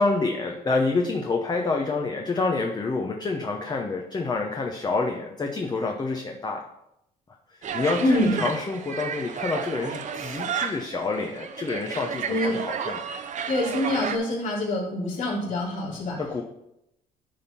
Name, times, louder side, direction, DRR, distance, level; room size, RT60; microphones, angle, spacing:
voice 1, 0.0-6.6 7.5-13.0 16.2-16.4, left 3 dB, 25° left, 2 dB, 0.9 m, -27 dB
sound 1, 7.6-14.2, right 7 dB, 45° right, 0.8 m, -32 dB
voice 2, 8.0-8.4 12.3-12.6 13.5-16.2, left 1 dB, 50° left, -6 dB, 3.4 m, -25 dB
10.5 x 3.6 x 5.8 m, 0.84 s
cardioid pair, 110°, 17 cm